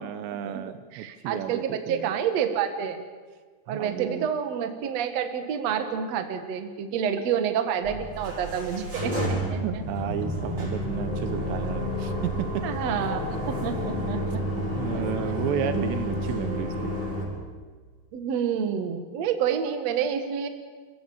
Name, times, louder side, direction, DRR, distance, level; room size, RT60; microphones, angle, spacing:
voice 1, 0.0-2.1 3.7-4.3 7.2-7.3 9.6-12.6 14.1-14.2 14.8-16.9, right 9 dB, 75° right, 10 dB, 2.9 m, -32 dB
voice 2, 0.9-3.1 3.7-9.8 12.6-13.2 13.5-14.6 14.9-15.0 15.6-15.7 18.1-20.5, right 8 dB, 60° right, 6 dB, 1.7 m, -28 dB
sound 1, 7.8-17.2, equal, 20° right, 8.0 m, -30 dB
29.0 x 16.5 x 7.2 m, 1.5 s
omnidirectional pair, 5.5 m